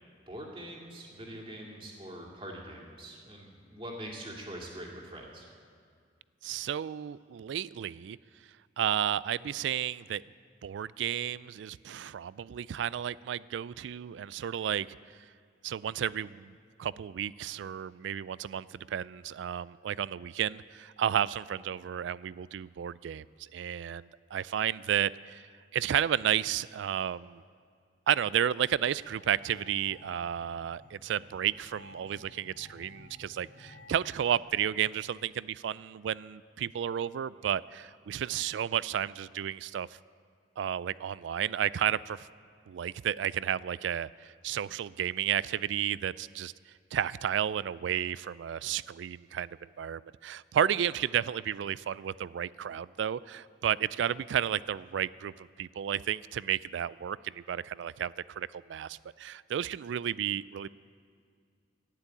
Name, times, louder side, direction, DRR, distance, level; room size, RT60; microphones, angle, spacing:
voice 1, 0.3-5.5, right 1 dB, 30° right, -1 dB, 2.3 m, -43 dB
voice 2, 6.4-8.2 8.8-10.2 10.6-14.9 15.6-25.4 25.7-27.4 28.1-39.9 40.6-42.3 42.7-46.5 46.9-49.5 49.8-60.7, right 9 dB, 75° right, 20 dB, 0.3 m, -32 dB
sound 1, 29.0-34.4, left 1 dB, 90° right, 2.7 m, -53 dB
12.0 x 9.9 x 9.0 m, 2.2 s
head